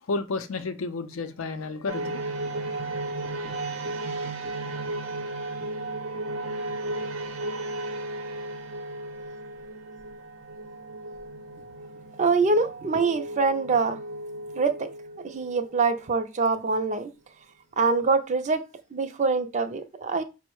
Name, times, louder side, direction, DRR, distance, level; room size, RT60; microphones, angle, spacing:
voice 1, 0.1-2.2, left 3 dB, 85° left, 0.5 m, -31 dB
sound 1, 1.9-16.2, right 2 dB, 80° right, 0.7 m, -35 dB
voice 2, 12.2-14.0 14.5-14.9 15.2-17.1 17.8-18.6 18.9-20.2, right 4 dB, 35° right, 0.4 m, -24 dB
5.2 x 2.1 x 4.6 m
head